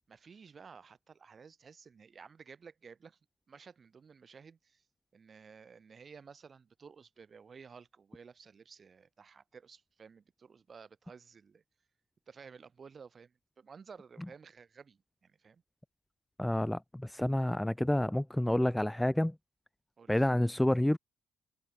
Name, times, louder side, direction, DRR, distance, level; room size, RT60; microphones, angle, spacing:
voice 1, 0.1-3.2 3.5-4.8 5.1-11.6 12.3-15.6 20.0-20.3, right 5 dB, 40° right, 2.5 m, -54 dB
voice 2, 16.4-19.3 20.1-21.0, left 1 dB, 5° left, 0.4 m, -29 dB
cardioid pair, 90°, 0 cm